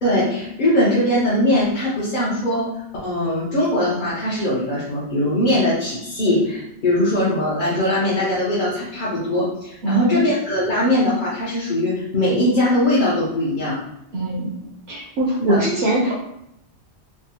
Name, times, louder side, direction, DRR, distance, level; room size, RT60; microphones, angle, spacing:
voice 1, 0.0-2.7 3.0-13.8 15.4-15.6, left 1 dB, 50° left, -9 dB, 0.8 m, -20 dB
voice 2, 14.1-14.5 14.9-16.2, right 2 dB, 70° right, -4 dB, 0.8 m, -21 dB
3.5 x 2.0 x 2.7 m, 0.80 s
omnidirectional pair, 1.1 m